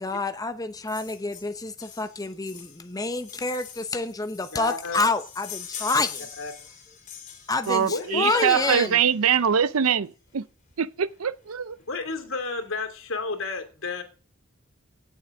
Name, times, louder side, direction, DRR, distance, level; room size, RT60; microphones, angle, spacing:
voice 1, 0.0-6.3 7.5-9.0, left 3 dB, 15° left, 0.7 m, -28 dB
sound 1, 0.9-9.2 10.3-10.4 10.7-10.8 11.0-11.2 11.5-12.1 12.6-12.7, left 7 dB, 35° left, 3.4 m, -43 dB
voice 2, 4.5-5.0 6.4-6.5 7.8-8.9 9.2-9.3 11.9-14.0, left 3 dB, 70° left, 2.8 m, -32 dB
voice 3, 7.7-10.5 10.8-11.8, right 7 dB, 85° right, 0.6 m, -23 dB
17.5 x 7.4 x 3.8 m
head